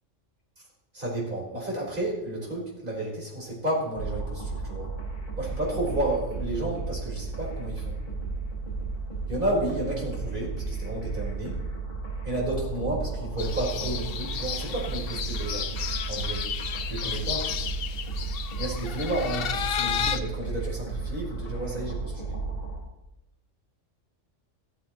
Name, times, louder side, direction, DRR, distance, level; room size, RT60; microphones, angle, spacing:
voice 1, 0.9-4.9 5.4-8.0 9.3-11.6 12.2-15.7 16.1-16.4 16.9-17.5 18.6-22.4, right 1 dB, 40° right, -4 dB, 4.4 m, -31 dB
sound 1, 4.0-22.8, right 3 dB, 35° left, 5.0 m, -34 dB
sound 2, 13.4-20.2, left 8 dB, 60° left, 0.7 m, -32 dB
15.0 x 14.0 x 3.0 m, 0.92 s
omnidirectional pair, 1.3 m